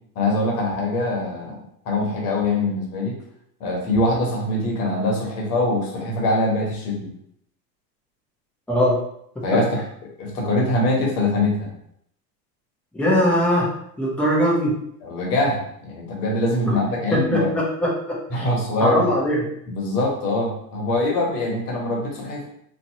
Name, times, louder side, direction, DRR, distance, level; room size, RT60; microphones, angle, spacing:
voice 1, 0.1-3.2 3.6-7.1 9.4-9.8 10.2-11.7 15.0-17.5 18.3-19.1 19.7-22.5, left 2 dB, 65° left, -1 dB, 1.3 m, -23 dB
voice 2, 8.7-9.0 9.3-9.6 12.9-14.8 16.7-16.8 17.3-17.9 18.3-18.5 18.8-19.5, equal, ahead, -5 dB, 0.9 m, -21 dB
2.8 x 2.8 x 2.8 m, 0.71 s
hypercardioid pair, 105°, 50 cm